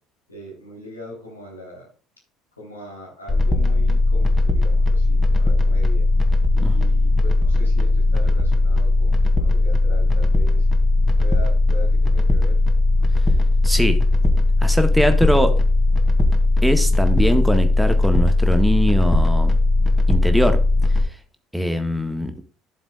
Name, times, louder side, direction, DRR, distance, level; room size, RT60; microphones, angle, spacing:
voice 1, 0.3-1.9 2.5-6.1 6.5-10.7 11.2-12.6, left 1 dB, 90° left, -3 dB, 3.8 m, -40 dB
sound 1, 3.3-21.0, left 2 dB, 15° left, 2.6 m, -17 dB
voice 2, 13.6-14.0 14.6-15.6 16.6-19.5 20.1-20.6 21.5-22.3, equal, 5° right, 6 dB, 1.6 m, -21 dB
12.5 x 7.2 x 2.4 m, 0.38 s
figure-of-eight pair, 55°, 0 cm